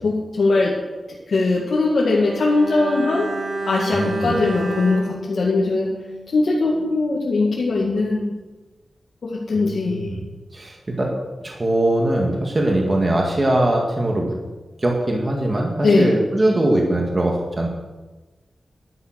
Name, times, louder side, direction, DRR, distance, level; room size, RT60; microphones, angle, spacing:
voice 1, 0.0-0.7 1.3-3.3 3.7-5.9 6.3-8.3 9.2-10.1 15.8-16.1, left 3 dB, 70° left, -5 dB, 2.1 m, -20 dB
Bowed string instrument, 2.0-6.5 6.7-6.9, right 2 dB, 80° right, 2.5 m, -30 dB
voice 2, 3.9-4.4 9.6-10.2 10.5-11.1 11.4-14.3 14.8-17.7, right 1 dB, 30° right, 0 dB, 2.0 m, -21 dB
11.5 x 9.7 x 6.6 m, 1.2 s
wide cardioid pair, 145°, 0 cm